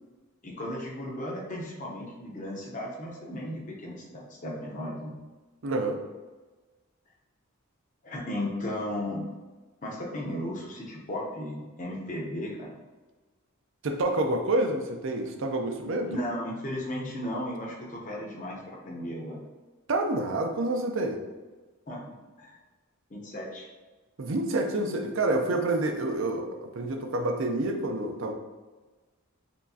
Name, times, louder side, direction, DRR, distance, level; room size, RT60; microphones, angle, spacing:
voice 1, 0.4-5.1 8.0-9.3 9.8-12.7 16.1-19.4 21.9-22.0 22.4-22.6 23.1-23.7, left 1 dB, 35° left, -3 dB, 0.8 m, -35 dB
voice 2, 5.6-6.0 13.8-16.1 19.9-21.2 24.2-28.3, right 2 dB, 60° right, 4 dB, 0.5 m, -28 dB
4.5 x 3.1 x 2.7 m, 1.2 s
head